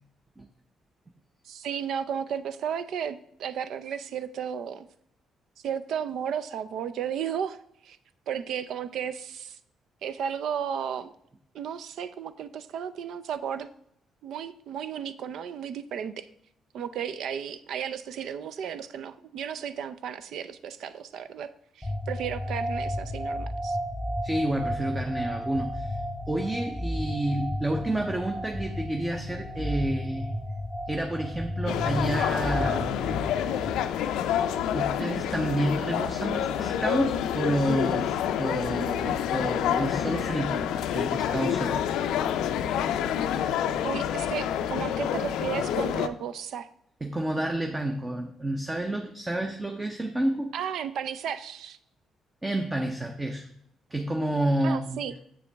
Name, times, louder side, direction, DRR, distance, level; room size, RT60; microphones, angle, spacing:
voice 1, 1.4-4.9 5.6-7.6 7.8-8.0 8.3-9.6 10.0-11.1 11.5-13.7 14.2-16.3 16.7-21.5 21.8-23.8 43.8-46.7 50.5-51.8 54.6-55.1, right 8 dB, 75° right, 13 dB, 0.5 m, -34 dB
sound 1, 21.8-33.7, equal, 5° left, 1.0 m, -33 dB
voice 2, 24.2-26.0 26.3-30.4 30.9-33.0 34.7-41.8 47.0-50.5 52.4-53.5 53.9-55.1, right 1 dB, 15° right, 4 dB, 0.7 m, -29 dB
sound 2, 31.7-46.1, left 9 dB, 90° left, 0.4 m, -28 dB
7.5 x 6.8 x 3.4 m, 0.73 s
cardioid pair, 90°, 0 cm